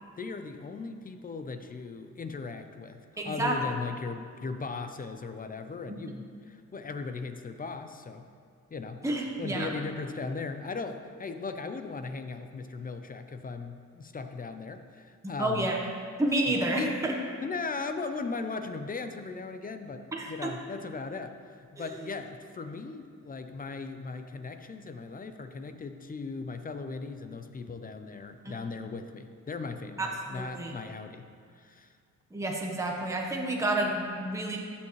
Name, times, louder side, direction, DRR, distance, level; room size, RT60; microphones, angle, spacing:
voice 1, 0.2-8.3 8.7-9.0 9.4-15.7 16.5-17.0 17.4-31.3 31.6-31.9, left 4 dB, 30° left, 8 dB, 0.6 m, -38 dB
voice 2, 3.2-3.6 9.0-9.7 15.4-15.8 16.2-17.1 20.1-20.5 21.8-21.9 30.0-30.7 32.3-34.6, right 1 dB, 10° right, -1 dB, 1.2 m, -30 dB
13.5 x 7.2 x 3.2 m, 2.2 s
cardioid pair, 90°, 30 cm